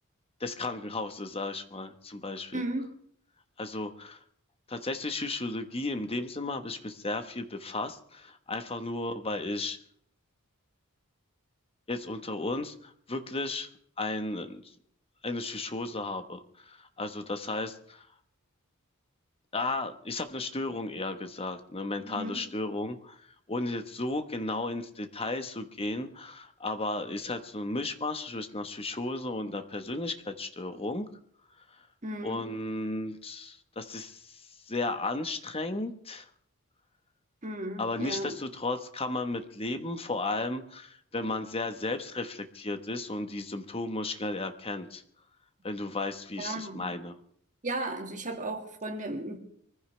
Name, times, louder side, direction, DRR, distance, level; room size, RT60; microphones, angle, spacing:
voice 1, 0.4-2.6 3.6-4.2 4.7-9.8 11.9-13.7 14.0-14.6 15.2-18.1 19.5-31.1 31.7-31.9 32.2-36.3 37.8-45.0 45.6-47.2, left 2 dB, 25° left, 8 dB, 1.2 m, -34 dB
voice 2, 2.5-2.9 22.1-22.4 32.0-32.4 37.4-38.4 46.4-46.9 47.6-49.4, right 1 dB, 35° right, 4 dB, 2.0 m, -35 dB
24.0 x 15.0 x 3.4 m, 0.63 s
head